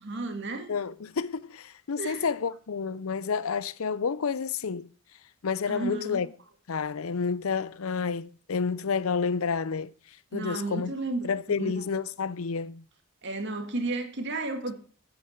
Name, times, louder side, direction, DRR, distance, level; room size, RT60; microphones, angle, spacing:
voice 1, 0.0-0.7 2.0-2.3 5.7-6.2 10.3-11.7 13.2-14.7, right 2 dB, 55° right, 1.9 m, -33 dB
voice 2, 0.7-4.9 5.4-6.3 6.7-9.9 10.3-10.9 11.2-12.9, left 5 dB, 75° left, 0.6 m, -30 dB
9.0 x 8.8 x 6.5 m
head